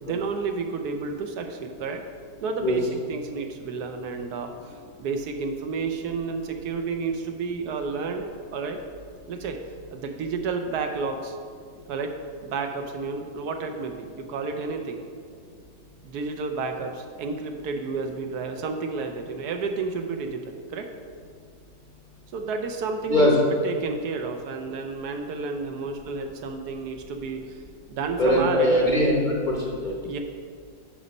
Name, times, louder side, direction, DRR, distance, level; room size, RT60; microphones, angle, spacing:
voice 1, 0.0-2.0 2.4-4.5 5.0-8.2 8.5-8.8 9.3-9.6 9.9-11.4 11.9-12.1 12.4-15.0 16.0-20.9 22.3-23.3 23.6-27.4 27.9-28.8 30.0-30.2, right 4 dB, 75° right, 5 dB, 1.1 m, -31 dB
voice 2, 28.2-29.9, left 1 dB, 35° left, -3 dB, 0.8 m, -21 dB
6.8 x 5.2 x 5.3 m, 2.1 s
omnidirectional pair, 1.8 m